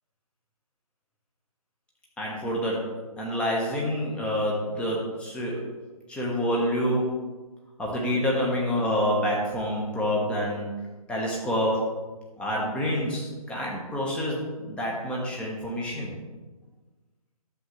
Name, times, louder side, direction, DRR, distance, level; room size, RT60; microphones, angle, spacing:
voice 1, 2.2-2.9 3.2-5.6 6.1-7.1 7.8-10.7 11.1-11.8 12.4-16.1, equal, 5° left, -3 dB, 1.4 m, -27 dB
11.5 x 7.5 x 3.3 m, 1.2 s
figure-of-eight pair, 145°, 20 cm